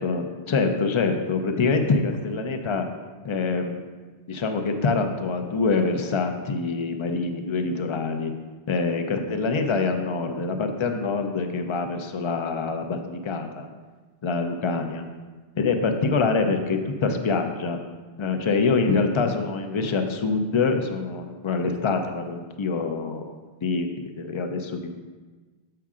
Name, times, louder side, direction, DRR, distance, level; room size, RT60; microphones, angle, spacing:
voice 1, 0.0-2.9 3.2-3.8 4.3-8.3 8.7-13.7 14.2-15.0 15.6-17.8 18.2-23.2 23.6-23.9 24.2-24.9, left 4 dB, 40° left, 5 dB, 0.5 m, -25 dB
7.3 x 5.7 x 3.7 m, 1.3 s
omnidirectional pair, 1.1 m